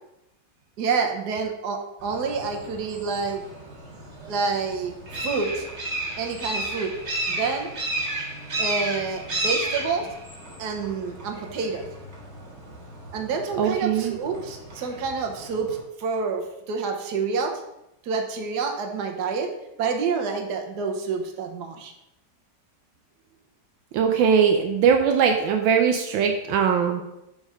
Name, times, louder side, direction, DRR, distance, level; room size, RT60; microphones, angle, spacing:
voice 1, 0.8-3.4 4.3-4.9 5.2-5.6 6.2-6.9 7.3-7.7 8.6-10.1 10.6-11.8 13.1-17.5 18.0-19.5 19.8-21.9, right 5 dB, 60° right, 3 dB, 1.4 m, -28 dB
sound 1, 2.0-15.8, right 1 dB, 35° right, 1.8 m, -33 dB
voice 2, 13.6-14.2 23.9-27.0, right 7 dB, 80° right, 4 dB, 1.3 m, -20 dB
5.5 x 4.8 x 4.8 m, 0.87 s
omnidirectional pair, 2.1 m